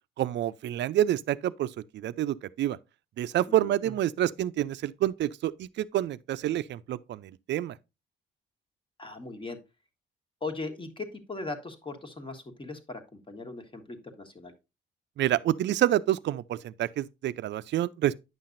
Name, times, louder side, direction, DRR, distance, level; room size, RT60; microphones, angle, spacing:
voice 1, 0.2-2.8 3.2-7.8 15.2-18.1, right 12 dB, 65° right, 0.5 m, -28 dB
voice 2, 9.0-9.6 10.4-14.5, left 3 dB, 25° left, 1.4 m, -39 dB
9.4 x 5.7 x 2.5 m
cardioid pair, 90°, 20 cm